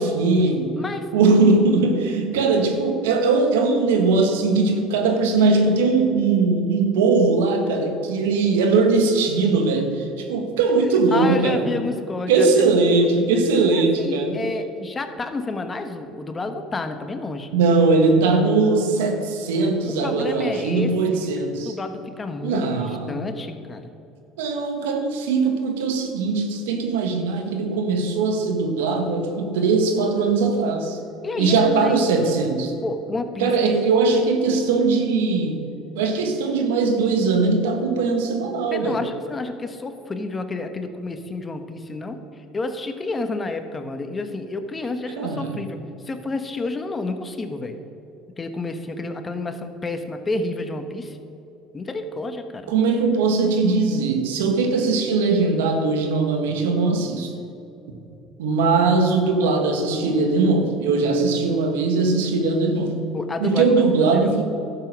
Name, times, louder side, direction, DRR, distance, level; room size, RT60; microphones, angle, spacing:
voice 1, 0.0-0.7 1.1-11.7 12.3-14.4 17.5-21.7 22.4-23.2 24.4-31.0 31.4-32.7 33.4-35.6 35.9-39.0 45.2-45.6 52.7-57.3 58.4-63.0 63.4-64.4, right 3 dB, 85° right, 5 dB, 1.4 m, -20 dB
voice 2, 0.8-1.1 11.1-13.2 13.8-17.5 20.0-23.9 31.2-32.0 32.8-33.6 38.7-47.8 48.4-51.2 51.7-52.7 63.1-63.8 64.1-64.4, left 3 dB, 25° left, 8 dB, 1.1 m, -30 dB
12.0 x 7.3 x 6.0 m, 2.8 s
supercardioid pair, 85°, 0 cm